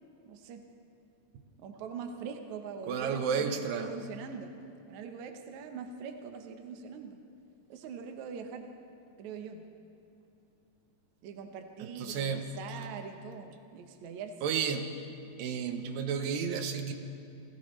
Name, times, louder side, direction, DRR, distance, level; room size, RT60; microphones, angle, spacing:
voice 1, 0.3-0.6 1.6-4.5 4.9-7.2 7.7-8.7 9.2-9.6 11.2-14.3, right 6 dB, 70° right, 5 dB, 2.1 m, -43 dB
voice 2, 2.9-3.9 11.8-12.5 14.4-14.9 15.4-16.9, right 6 dB, 85° right, 6 dB, 2.6 m, -32 dB
30.0 x 15.0 x 3.2 m, 2.7 s
omnidirectional pair, 3.9 m